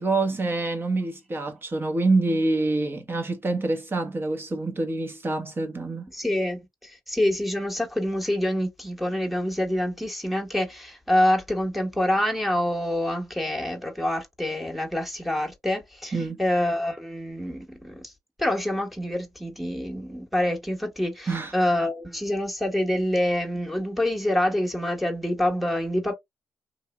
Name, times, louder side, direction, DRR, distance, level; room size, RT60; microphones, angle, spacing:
voice 1, 0.0-6.1 16.1-16.4 21.3-21.5, right 2 dB, 30° right, 1.0 m, -26 dB
voice 2, 6.1-18.1 18.4-26.1, left 1 dB, ahead, 1.1 m, -26 dB
3.0 x 2.6 x 2.2 m
supercardioid pair, 55°, 7 cm